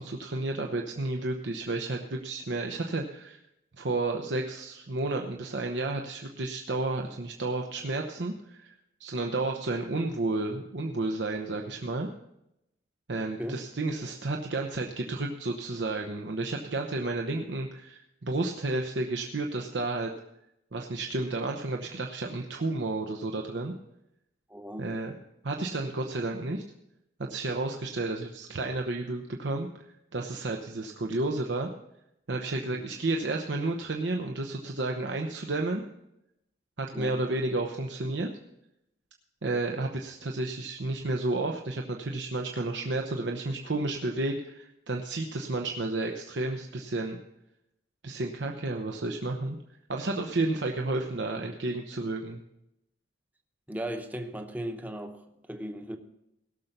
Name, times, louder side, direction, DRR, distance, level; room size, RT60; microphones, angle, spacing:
voice 1, 0.0-3.4 3.8-8.7 9.0-12.1 13.1-20.1 20.7-23.7 24.8-25.1 25.4-26.6 27.2-29.7 30.1-31.7 32.3-35.8 36.8-38.3 39.4-47.2 48.0-49.6 49.9-52.4, right 2 dB, 80° right, 2 dB, 0.9 m, -31 dB
voice 2, 24.5-24.9 32.7-32.8 36.9-37.2 53.7-55.2 55.5-56.0, right 1 dB, 10° right, 5 dB, 0.8 m, -36 dB
17.5 x 6.7 x 5.8 m, 0.85 s
head